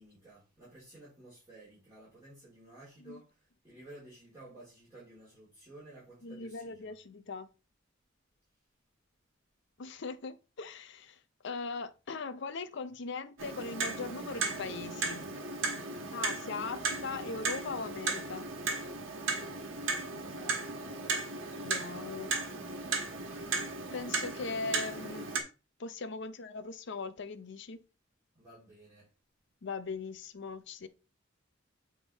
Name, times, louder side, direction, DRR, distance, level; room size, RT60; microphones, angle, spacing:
voice 1, 0.0-6.9 20.4-20.9 28.3-29.1, right 1 dB, 15° right, 3.7 m, -54 dB
voice 2, 6.2-7.5 9.8-11.2 11.4-15.3 16.1-18.4 21.5-22.3 23.9-25.5 25.8-27.8 29.6-30.9, left 4 dB, 60° left, 0.6 m, -40 dB
Clock, 13.4-25.4, right 3 dB, 75° right, 1.4 m, -36 dB
7.9 x 3.6 x 4.0 m
head